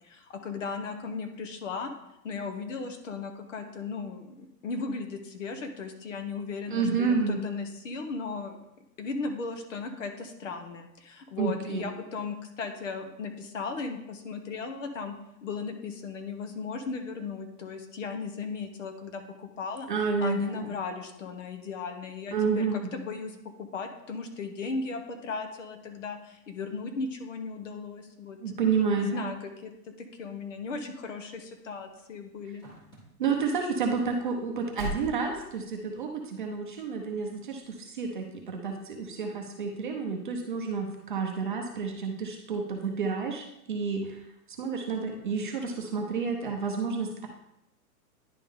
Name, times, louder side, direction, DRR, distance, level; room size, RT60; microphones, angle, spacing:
voice 1, 0.0-1.9 2.2-8.6 9.0-15.1 15.4-19.9 20.2-23.3 23.6-28.4 29.0-29.7 30.0-32.7, left 4 dB, 50° left, 7 dB, 0.9 m, -36 dB
voice 2, 6.7-7.4 11.4-11.9 19.9-20.7 22.3-22.8 28.4-29.3 33.2-44.3 44.6-47.3, right 5 dB, 30° right, 1 dB, 0.7 m, -30 dB
sound 1, 31.3-36.1 36.8-37.1 37.5-37.6, right 2 dB, 10° left, 1.4 m, -42 dB
10.5 x 3.6 x 3.6 m, 0.83 s
hypercardioid pair, 175°, 49 cm